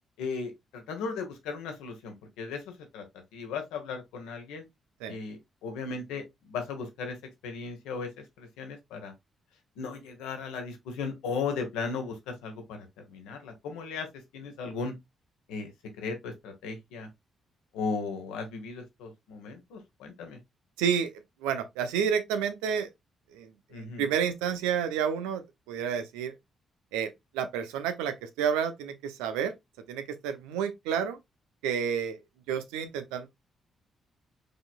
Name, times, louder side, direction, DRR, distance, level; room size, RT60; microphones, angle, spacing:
voice 1, 0.2-3.0 3.3-4.6 5.1-7.2 7.4-8.1 8.4-9.1 9.8-14.1 14.3-14.9 15.5-15.7 16.0-17.1 17.7-20.4 23.7-24.0, left 4 dB, 80° left, 1.2 m, -36 dB
voice 2, 20.8-21.1 21.4-22.9 23.3-26.3 26.9-27.1 27.3-29.5 29.9-31.2 31.6-32.2 32.5-33.3, right 7 dB, 85° right, 0.7 m, -30 dB
4.9 x 4.1 x 2.4 m
hypercardioid pair, 45°, 0 cm